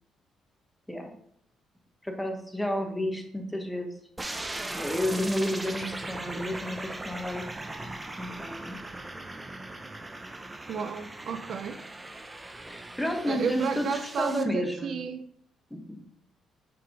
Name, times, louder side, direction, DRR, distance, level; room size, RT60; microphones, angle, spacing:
voice 1, 2.0-3.9 4.7-7.4 8.2-8.8 12.7-15.0 15.7-16.0, left 1 dB, 5° left, 1.2 m, -31 dB
sound 1, 4.2-14.4, right 2 dB, 15° right, 0.7 m, -39 dB
voice 2, 10.7-11.8 13.3-15.3, right 6 dB, 60° right, 0.4 m, -32 dB
5.7 x 3.6 x 4.9 m
cardioid pair, 90°, 0 cm